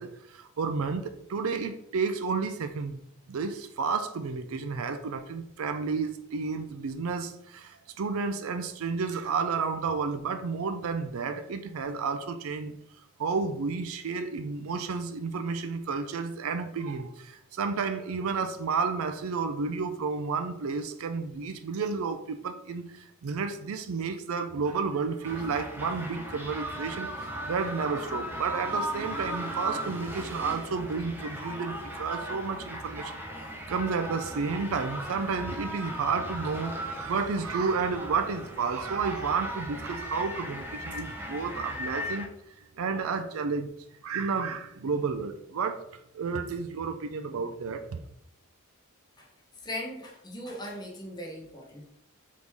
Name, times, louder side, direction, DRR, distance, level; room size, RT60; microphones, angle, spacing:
voice 1, 0.0-3.0 3.3-12.8 13.2-33.2 33.7-42.3 42.7-43.7 44.0-45.8 46.1-48.0, right 5 dB, 70° right, 8 dB, 0.4 m, -31 dB
sound 1, 25.2-42.3, equal, 10° right, 0.5 m, -37 dB
voice 2, 49.6-51.9, left 1 dB, 20° left, -1 dB, 0.8 m, -39 dB
4.0 x 3.1 x 3.4 m, 0.74 s
head